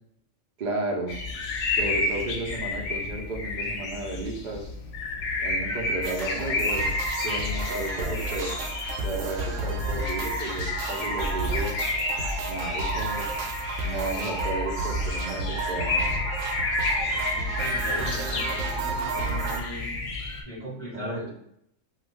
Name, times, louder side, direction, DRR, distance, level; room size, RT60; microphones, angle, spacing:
voice 1, 0.6-1.2 1.8-4.7 5.4-6.9 7.2-8.5 9.0-11.8 12.4-13.3 13.8-16.2 20.9-21.3, right 2 dB, 55° right, -1 dB, 0.5 m, -33 dB
sound 1, 1.1-20.4, left 3 dB, 70° left, 0.8 m, -31 dB
sound 2, 6.0-19.6, right 2 dB, 75° right, 0.9 m, -31 dB
voice 2, 17.0-19.9 20.4-21.3, equal, 30° left, -8 dB, 0.9 m, -39 dB
2.6 x 2.3 x 3.3 m, 0.74 s
omnidirectional pair, 1.4 m